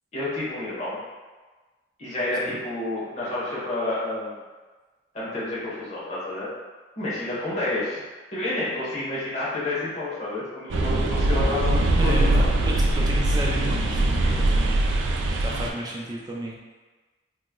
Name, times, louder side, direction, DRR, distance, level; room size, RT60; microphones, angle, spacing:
voice 1, 0.1-1.0 2.0-4.4 5.1-6.5 7.0-8.0 8.3-12.4 14.2-14.5, left 2 dB, 40° left, -9 dB, 1.1 m, -29 dB
sound 1, 10.7-15.7, right 1 dB, 85° right, 0.4 m, -22 dB
voice 2, 11.9-14.2 14.5-14.9 15.4-16.6, right 1 dB, 20° right, -3 dB, 0.4 m, -33 dB
3.0 x 2.0 x 3.7 m, 1.3 s
head